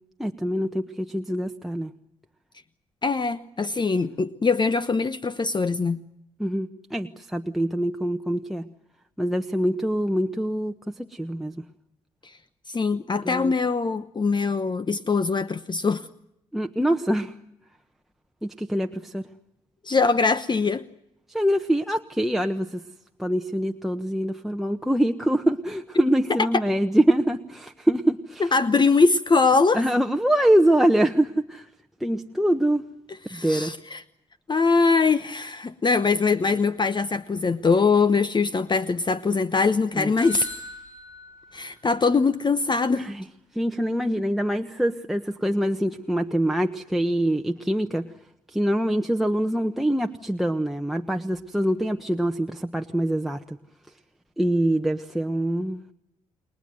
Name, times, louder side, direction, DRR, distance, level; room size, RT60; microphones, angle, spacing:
voice 1, 0.2-1.9 6.4-8.7 9.2-10.7 11.1-11.5 13.2-13.5 16.5-17.3 18.4-19.3 21.3-22.8 23.2-28.5 29.7-31.6 32.0-32.8 33.3-33.7 39.9-40.1 43.0-43.2 43.5-48.1 48.5-53.6 54.4-55.8, right 1 dB, ahead, 4 dB, 1.2 m, -24 dB
voice 2, 3.0-6.0 12.2-12.4 12.7-16.1 19.8-20.9 26.5-26.6 28.4-29.8 33.1-34.0 34.5-40.5 41.5-43.1, left 4 dB, 30° left, 14 dB, 1.0 m, -22 dB
sound 1, 40.2-42.1, left 1 dB, 85° left, 7.5 m, -41 dB
29.5 x 21.5 x 7.8 m, 0.82 s
hypercardioid pair, 45°, 15 cm